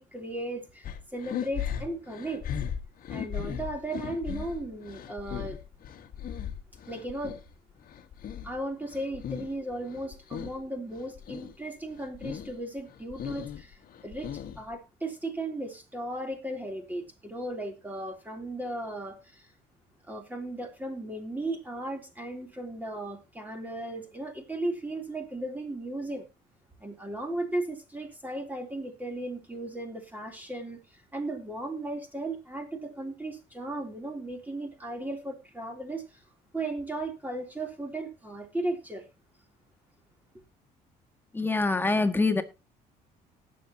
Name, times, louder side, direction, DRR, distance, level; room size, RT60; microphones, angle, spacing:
voice 1, 0.0-2.4 3.1-5.6 6.9-7.4 8.4-19.5 20.1-26.2 26.8-36.2 36.5-39.1, right 1 dB, 10° right, 3.2 m, -36 dB
sound 1, 0.8-7.4 7.8-9.6 9.8-10.6 10.9-11.5 11.9-12.5 12.9-14.7, left 9 dB, 55° left, 1.5 m, -37 dB
voice 2, 41.3-42.4, left 3 dB, 10° left, 1.7 m, -25 dB
19.0 x 7.6 x 2.9 m
cardioid pair, 110°, 17 cm